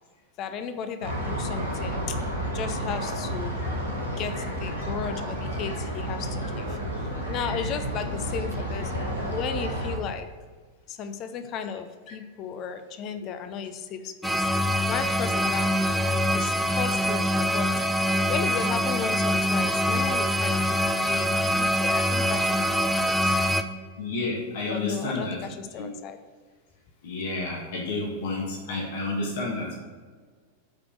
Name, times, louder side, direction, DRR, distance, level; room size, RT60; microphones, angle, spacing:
voice 1, 0.4-2.2 2.5-3.5 4.0-8.9 9.3-10.3 10.9-14.5 14.9-17.7 18.3-23.3 24.6-26.2, left 7 dB, 35° left, 9 dB, 0.7 m, -35 dB
sound 1, 1.0-10.0, right 1 dB, 85° left, 2.4 m, -31 dB
sound 2, 14.2-23.6, equal, ahead, 0.6 m, -24 dB
voice 2, 24.0-25.4 25.8-25.9 27.0-29.8, left 2 dB, 55° left, -3 dB, 1.8 m, -30 dB
8.2 x 5.1 x 6.3 m, 1.5 s
figure-of-eight pair, 90°, 0 cm